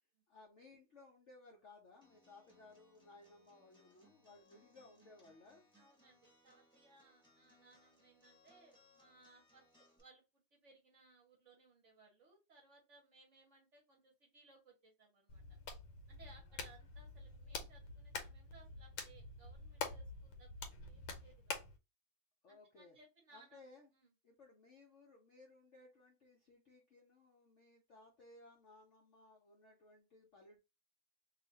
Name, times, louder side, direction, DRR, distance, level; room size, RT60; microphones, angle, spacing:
voice 1, 0.3-5.6 22.4-23.0 23.3-23.9 24.2-30.6, left 2 dB, 60° left, 0 dB, 0.7 m, -61 dB
Acoustic guitar, 2.0-10.0, left 1 dB, 5° left, 0.7 m, -70 dB
voice 2, 5.8-15.4 16.1-21.6 22.5-23.6 23.9-24.1, right 3 dB, 50° right, -1 dB, 1.0 m, -65 dB
Hands, 15.3-21.8, left 4 dB, 80° left, 1.3 m, -47 dB
3.0 x 2.4 x 4.0 m, 0.27 s
omnidirectional pair, 2.0 m